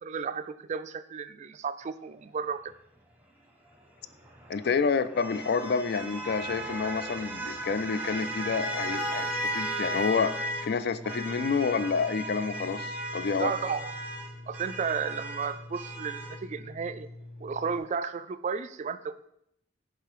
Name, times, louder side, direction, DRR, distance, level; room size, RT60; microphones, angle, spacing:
voice 1, 0.0-2.7 13.4-13.9 14.5-17.1 17.4-19.3, right 6 dB, 40° right, 12 dB, 0.3 m, -33 dB
sound 1, 4.1-10.7 11.0-16.4, right 1 dB, 10° right, 0.8 m, -36 dB
voice 2, 4.5-10.3 10.6-13.5, left 5 dB, 60° left, 13 dB, 0.4 m, -29 dB
sound 2, 8.2-17.8, left 1 dB, 85° left, 1.4 m, -46 dB
6.6 x 3.9 x 4.9 m, 0.76 s
head